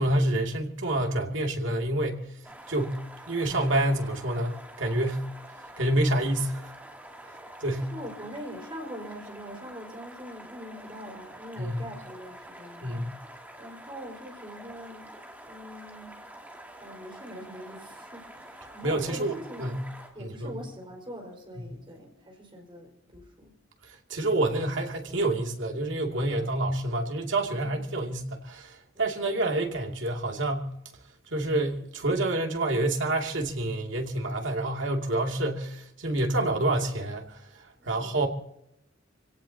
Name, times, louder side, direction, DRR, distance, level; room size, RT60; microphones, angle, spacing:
voice 1, 0.0-2.2 2.7-3.0 3.3-5.2 5.8-6.7 7.6-7.9 11.6-11.8 12.8-13.2 18.8-19.3 19.6-19.8 20.2-20.6 24.1-30.7 31.3-37.4 37.9-38.3, right 1 dB, 70° right, 2.6 m, -28 dB
sound 1, 2.4-20.1, right 1 dB, 10° right, 2.7 m, -47 dB
voice 2, 7.8-13.2 13.6-15.2 15.5-16.2 16.8-19.7 20.1-23.5 26.3-26.5 28.9-29.2 37.8-38.3, equal, 25° right, 4.8 m, -43 dB
26.5 x 17.5 x 2.9 m
head